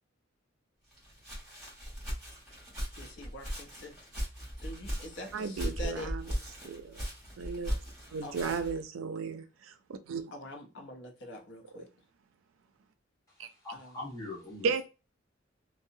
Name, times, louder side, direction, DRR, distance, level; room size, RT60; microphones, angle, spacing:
Walk footsteps, 0.9-8.8, equal, ahead, 1.3 m, -38 dB
voice 1, 3.0-3.9 4.6-6.1 8.2-8.6 10.3-11.9 13.7-14.0, equal, 60° left, 0.6 m, -44 dB
voice 2, 5.3-7.1 7.4-7.8 8.1-10.3 11.7-11.8 13.4-13.5 14.6-14.8, right 5 dB, 90° right, 0.4 m, -35 dB
voice 3, 13.6-14.8, left 2 dB, 15° left, 1.2 m, -41 dB
2.7 x 2.0 x 2.6 m
head